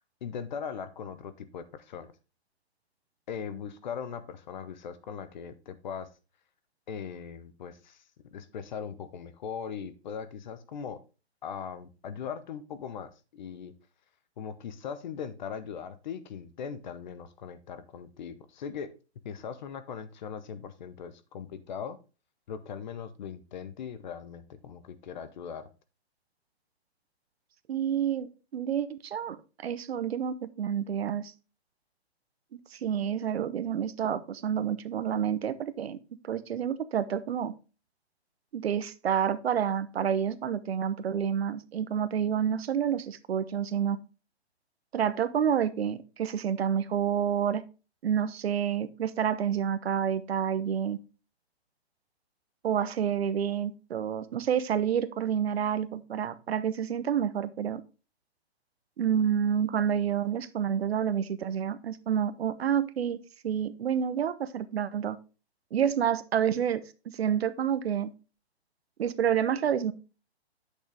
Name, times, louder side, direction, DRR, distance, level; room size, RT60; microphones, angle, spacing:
voice 1, 0.2-2.1 3.3-6.1 6.9-8.0 8.3-11.0 11.4-13.7 14.4-18.9 19.2-22.0 22.5-25.7, left 7 dB, 45° left, 13 dB, 0.9 m, -39 dB
voice 2, 27.7-31.3 32.5-36.0 36.2-37.5 38.5-44.0 44.9-47.6 48.0-51.0 52.6-57.8 59.0-65.2 65.7-68.1 69.0-69.9, right 8 dB, 65° right, 14 dB, 0.9 m, -29 dB
8.5 x 6.5 x 3.4 m, 0.32 s
hypercardioid pair, 160°, 33 cm